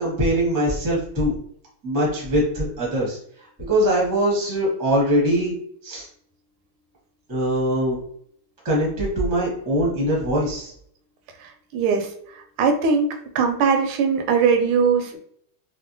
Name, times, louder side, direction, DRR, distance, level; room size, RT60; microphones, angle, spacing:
voice 1, 0.0-1.3 1.8-3.2 3.7-5.5 5.8-6.1 7.3-8.0 8.6-10.7, equal, 20° right, -4 dB, 0.5 m, -22 dB
voice 2, 11.4-12.1 12.6-13.1 13.3-15.2, right 5 dB, 85° right, 4 dB, 1.4 m, -20 dB
3.5 x 2.1 x 2.6 m, 0.65 s
omnidirectional pair, 2.3 m